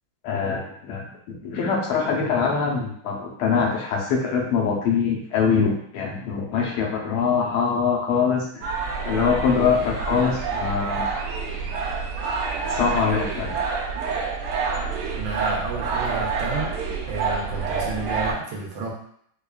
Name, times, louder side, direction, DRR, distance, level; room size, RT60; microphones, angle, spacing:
voice 1, 0.2-8.7 9.0-11.1 12.7-13.6, left 6 dB, 85° left, -2 dB, 1.7 m, -23 dB
sound 1, 8.6-18.3, right 5 dB, 90° right, 1.5 m, -28 dB
voice 2, 15.2-16.7 17.1-18.9, right 3 dB, 70° right, -3 dB, 1.4 m, -30 dB
4.9 x 2.3 x 2.3 m, 0.66 s
omnidirectional pair, 2.3 m